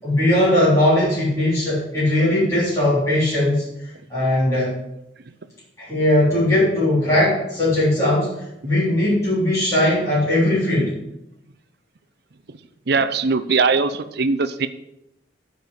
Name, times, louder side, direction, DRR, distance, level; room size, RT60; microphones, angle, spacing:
voice 1, 0.0-3.6 4.1-4.7 5.8-11.0, left 1 dB, 15° left, -11 dB, 3.8 m, -19 dB
voice 2, 12.9-14.7, right 4 dB, 60° right, 12 dB, 0.7 m, -20 dB
9.2 x 5.3 x 8.1 m, 0.87 s
head